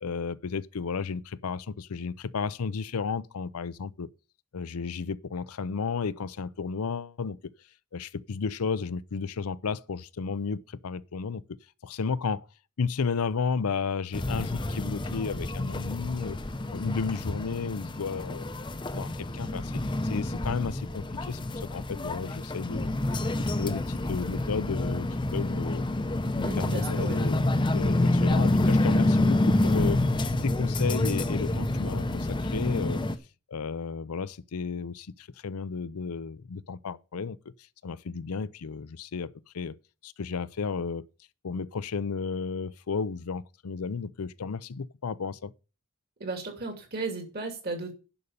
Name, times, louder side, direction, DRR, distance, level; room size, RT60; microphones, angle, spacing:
voice 1, 0.0-4.1 4.5-7.5 7.9-11.4 11.8-12.4 12.8-16.4 16.7-18.5 18.9-25.8 26.4-30.0 30.4-33.0 33.5-37.4 37.8-39.8 40.0-41.0 41.4-45.5, left 5 dB, 80° left, 0.5 m, -33 dB
sound 1, 14.1-33.1, left 1 dB, 20° left, 0.7 m, -28 dB
voice 2, 26.4-27.2 46.2-47.9, right 3 dB, 45° right, 2.8 m, -35 dB
11.0 x 5.3 x 6.8 m
head